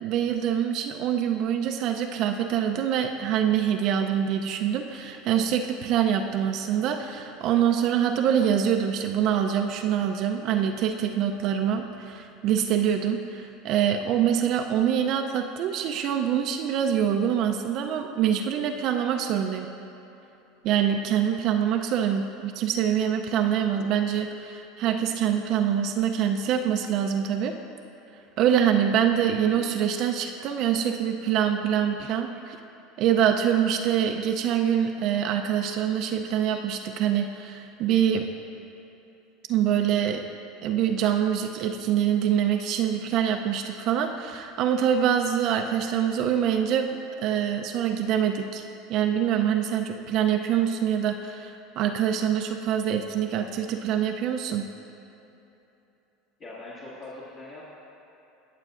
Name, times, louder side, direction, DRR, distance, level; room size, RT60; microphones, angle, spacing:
voice 1, 0.0-19.7 20.6-27.5 28.4-32.6 33.0-38.3 39.5-40.2 40.6-48.6 48.9-54.7, right 9 dB, 55° right, 4 dB, 0.5 m, -25 dB
voice 2, 56.4-57.7, left 2 dB, 45° left, -9 dB, 1.9 m, -41 dB
18.5 x 6.7 x 2.5 m, 3.0 s
supercardioid pair, 105°, 0 cm